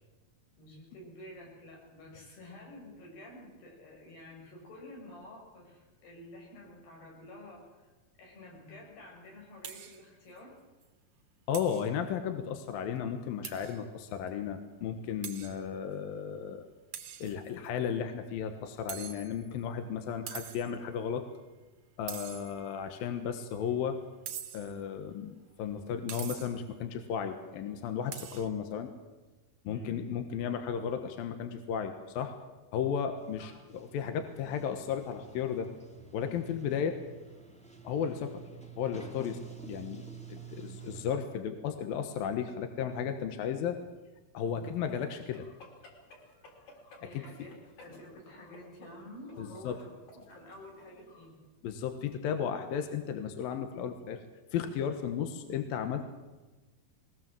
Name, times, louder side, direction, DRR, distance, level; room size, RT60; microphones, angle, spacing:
voice 1, 0.6-7.9 8.2-10.5 29.6-30.0 33.4-33.5 47.0-51.4, left 1 dB, 85° left, -1 dB, 8.2 m, -50 dB
sound 1, 9.6-10.0 10.4-10.5 10.8-10.9 11.5-11.9 13.4-13.8 14.3-14.4 15.2-15.6 16.9-17.7 18.9-19.6 20.3-20.8 22.1-22.8 24.3-24.8 26.1-26.7 28.1-28.5, right 9 dB, 60° right, 2.7 m, -43 dB
voice 2, 11.5-16.6 17.2-21.2 22.0-24.0 24.5-28.9 29.7-32.3 32.7-35.7 36.1-37.0 37.8-38.4 38.8-39.4 39.7-40.0 40.3-43.8 44.3-45.4 47.1-47.2 49.4-49.8 51.6-54.2 54.5-56.0, left 8 dB, 70° left, 7 dB, 2.9 m, -34 dB
Sliding door, 33.2-41.0, right 6 dB, 10° left, 0.3 m, -49 dB
sound 2, 44.7-51.3, left 2 dB, 50° left, 4.9 m, -56 dB
21.5 x 19.5 x 7.6 m, 1.2 s
omnidirectional pair, 4.5 m